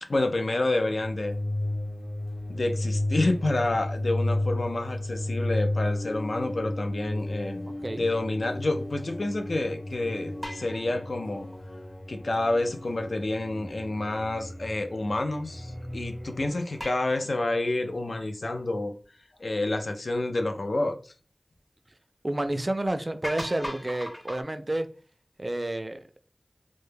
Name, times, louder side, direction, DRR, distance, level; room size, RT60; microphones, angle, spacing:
voice 1, 0.0-1.4 2.5-7.7 8.0-11.5 12.1-18.9 19.4-21.1, left 2 dB, 75° left, 0.3 m, -29 dB
sound 1, 1.0-16.6, left 1 dB, 50° left, 0.8 m, -33 dB
sound 2, 10.4-11.9 16.8-18.0 19.0-19.1 22.9-23.0 23.2-24.4, equal, 15° left, 0.6 m, -39 dB
voice 2, 22.2-24.9 25.4-26.0, right 1 dB, 40° right, 0.3 m, -30 dB
2.2 x 2.0 x 3.1 m
wide cardioid pair, 50°, 0 cm